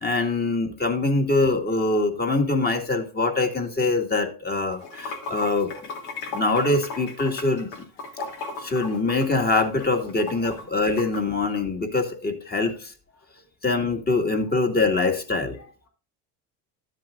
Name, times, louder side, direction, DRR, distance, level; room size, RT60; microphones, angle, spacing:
voice 1, 0.0-5.7 6.3-7.9 8.6-12.9 13.6-15.6, left 3 dB, 25° left, 2.0 m, -24 dB
Water / Sink (filling or washing), 4.7-11.2, left 3 dB, 80° left, 2.9 m, -35 dB
voice 2, 8.2-8.5 10.4-10.5 12.5-12.8 13.1-13.5 14.5-15.0 15.5-15.9, left 2 dB, 40° left, 3.0 m, -54 dB
13.0 x 7.6 x 2.5 m
supercardioid pair, 105°, 38 cm